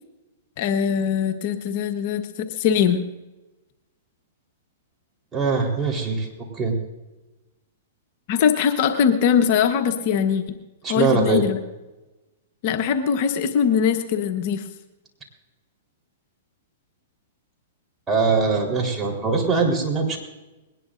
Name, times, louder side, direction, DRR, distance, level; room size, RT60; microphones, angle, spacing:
voice 1, 0.6-3.0 8.3-10.6 10.9-11.6 12.6-14.7, left 7 dB, 50° left, 6 dB, 1.1 m, -21 dB
voice 2, 5.3-6.3 6.5-6.7 10.8-11.4 18.1-20.2, right 4 dB, 20° right, 0 dB, 3.9 m, -22 dB
21.0 x 19.0 x 2.6 m, 1.1 s
hypercardioid pair, 125°, 0 cm